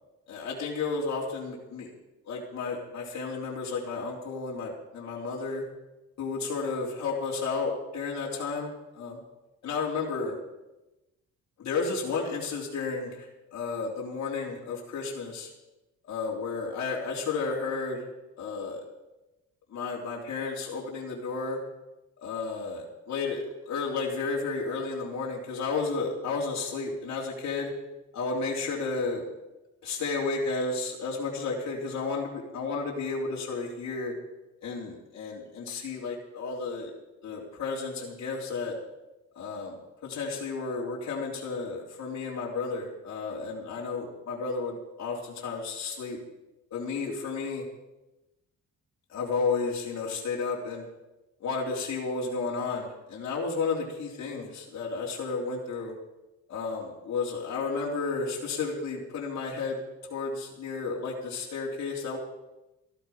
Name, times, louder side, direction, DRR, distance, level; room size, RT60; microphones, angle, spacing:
voice 1, 0.3-1.9 2.3-5.6 6.2-9.2 9.6-10.4 11.6-15.5 16.1-18.1 18.4-18.8 19.7-21.6 22.2-27.7 28.1-29.3 29.8-34.1 34.6-36.9 37.2-38.7 39.4-46.2 46.7-47.6 49.1-50.9 51.4-55.9 56.5-59.8 60.1-62.2, left 4 dB, 60° left, -4 dB, 3.6 m, -32 dB
14.5 x 12.5 x 5.8 m, 1.0 s
cardioid pair, 90°, 30 cm